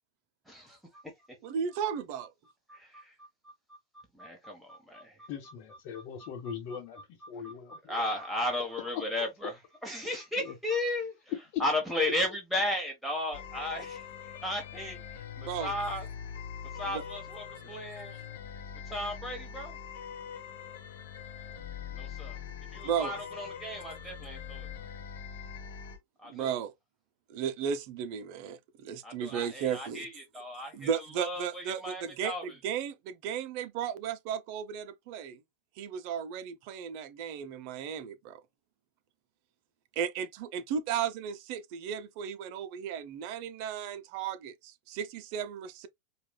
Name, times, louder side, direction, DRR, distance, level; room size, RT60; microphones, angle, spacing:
voice 1, 0.5-1.0 2.7-3.3 4.1-5.3 5.9-6.0 7.4-11.1 11.6-14.0 14.4-15.0 15.6-16.1 16.7-18.2 18.9-19.8 21.9-22.4 22.7-24.7 26.2-26.6 29.0-32.4, left 1 dB, ahead, 1.2 m, -35 dB
voice 2, 1.4-2.3 15.4-15.7 16.9-17.0 17.6-17.8 22.8-23.1 26.2-26.7 27.3-30.1 30.7-35.4 35.8-38.4 40.0-45.9, right 8 dB, 55° right, 0.6 m, -35 dB
voice 3, 5.3-8.0 10.4-10.5 11.5-11.6 12.0-12.1, left 9 dB, 55° left, 1.1 m, -40 dB
sound 1, 13.3-26.0, left 8 dB, 75° left, 1.2 m, -43 dB
4.8 x 2.4 x 2.2 m
hypercardioid pair, 115°, 0 cm